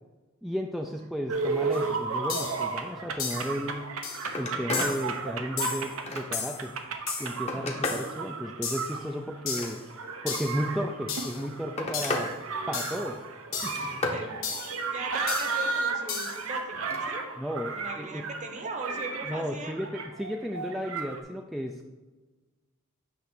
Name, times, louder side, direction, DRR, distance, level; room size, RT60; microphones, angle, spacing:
voice 1, 0.4-3.9 4.4-6.7 7.2-9.8 10.2-12.3 12.7-13.2 13.6-13.9 17.4-18.3 19.3-21.9, equal, ahead, 2 dB, 0.3 m, -34 dB
sound 1, 1.3-21.2, right 4 dB, 90° right, 0.8 m, -34 dB
sound 2, 1.7-1.8 2.3-2.6 3.2-3.5 4.0-4.3 4.7-5.1 5.6-5.9 6.3-6.6 7.1-7.4 7.8-8.1 8.6-9.0 9.5-9.8 10.3-10.6 11.1-11.4 11.9-12.3 12.7-13.1 13.5-13.9 14.4-14.8 15.3-15.6 16.1-16.4, left 6 dB, 65° left, 1.3 m, -34 dB
Telephone, 3.7-3.8 4.1-5.0 5.4-6.5 7.1-8.1 9.3-10.2 11.1-12.3 12.6-13.1 13.5-14.2 16.7-17.0 18.4-18.6, left 2 dB, 30° left, 1.0 m, -34 dB
voice 2, 14.8-17.3 17.7-19.8, right 3 dB, 35° right, 4 dB, 0.9 m, -39 dB
8.2 x 3.2 x 6.0 m, 1.2 s
head